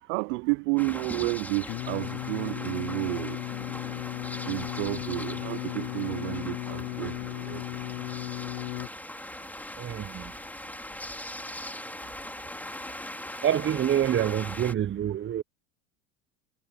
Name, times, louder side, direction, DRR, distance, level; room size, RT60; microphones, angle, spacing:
voice 1, 0.0-3.4 4.5-7.6, right 30 dB, 65° right, 0.6 m, -31 dB
sound 1, 0.8-14.7, left 1 dB, 5° left, 3.4 m, -40 dB
Singing, 1.7-8.9, left 29 dB, 65° left, 0.7 m, -36 dB
voice 2, 9.8-10.3 13.4-15.4, right 10 dB, 30° right, 0.9 m, -27 dB
hypercardioid pair, 75°, 38 cm